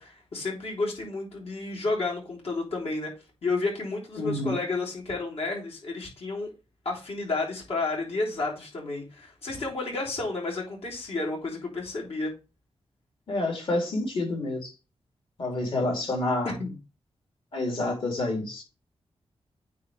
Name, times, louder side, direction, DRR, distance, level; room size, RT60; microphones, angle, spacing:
voice 1, 0.0-3.1 3.4-6.5 6.8-12.3 16.4-16.7, left 3 dB, 70° left, -3 dB, 3.5 m, -31 dB
voice 2, 4.2-4.6 13.3-14.7 15.4-16.5 17.5-18.6, left 2 dB, 55° left, 0 dB, 3.0 m, -28 dB
9.3 x 4.0 x 3.2 m, 0.30 s
wide cardioid pair, 115°, 11 cm